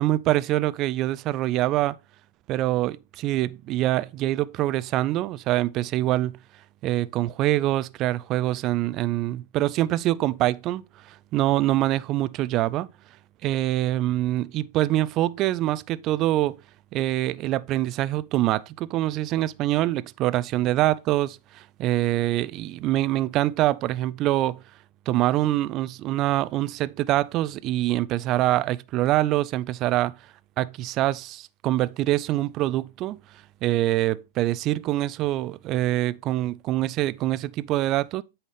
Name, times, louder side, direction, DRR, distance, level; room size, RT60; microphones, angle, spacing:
voice 1, 0.0-2.0 2.5-6.4 6.8-12.9 13.4-16.6 16.9-24.6 25.1-30.1 30.6-33.2 33.6-38.2, right 15 dB, 40° right, 0.3 m, -25 dB
8.2 x 5.6 x 3.4 m
hypercardioid pair, 105°, 0 cm